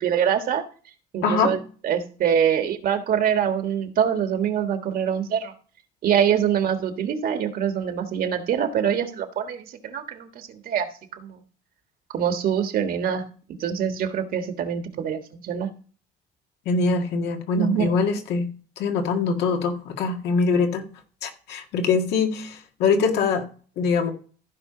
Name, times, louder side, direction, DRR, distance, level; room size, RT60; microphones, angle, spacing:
voice 1, 0.0-0.6 1.1-5.5 6.0-10.9 11.1-11.4 12.1-13.2 13.6-15.7 17.6-17.9, right 8 dB, 60° right, 7 dB, 1.5 m, -24 dB
voice 2, 1.2-1.5 16.7-18.5 18.8-20.8 21.2-23.4 23.8-24.1, left 4 dB, 80° left, 4 dB, 1.8 m, -23 dB
15.0 x 5.1 x 3.8 m, 0.40 s
cardioid pair, 110°, 17 cm